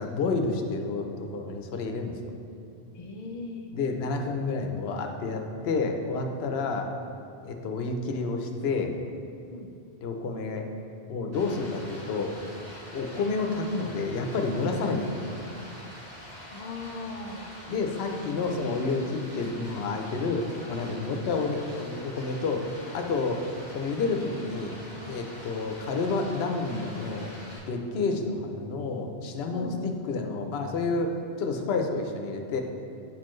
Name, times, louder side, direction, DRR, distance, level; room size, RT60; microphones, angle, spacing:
voice 1, 0.0-2.1 3.7-6.9 7.4-8.9 10.0-10.6 11.1-12.3 12.9-15.3 17.7-22.6 22.9-23.4 23.7-24.8 25.1-27.3 27.7-31.1 31.4-32.6, left 3 dB, 75° left, 4 dB, 0.9 m, -29 dB
voice 2, 2.9-3.7 9.5-9.7 16.5-17.6 28.0-28.8 29.5-29.8, left 3 dB, 45° left, 3 dB, 0.5 m, -39 dB
Stream, 11.3-27.6, equal, 80° right, 2.0 m, -45 dB
8.8 x 4.3 x 3.1 m, 2.7 s
omnidirectional pair, 1.1 m